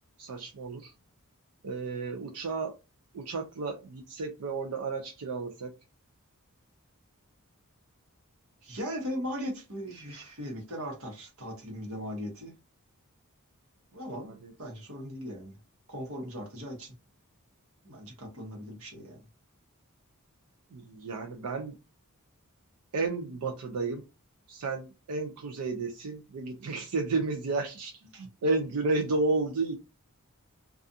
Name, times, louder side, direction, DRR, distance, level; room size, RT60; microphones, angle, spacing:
voice 1, 0.2-0.9 1.6-2.7 3.1-5.7 14.2-14.5 20.7-21.7 22.9-24.0 24.5-29.7, right 3 dB, 85° right, 0.4 m, -32 dB
voice 2, 8.6-12.5 13.9-14.3 14.6-15.5 15.9-17.0 17.8-19.2 28.1-28.3, equal, 65° right, 1.0 m, -38 dB
2.4 x 2.3 x 2.6 m
head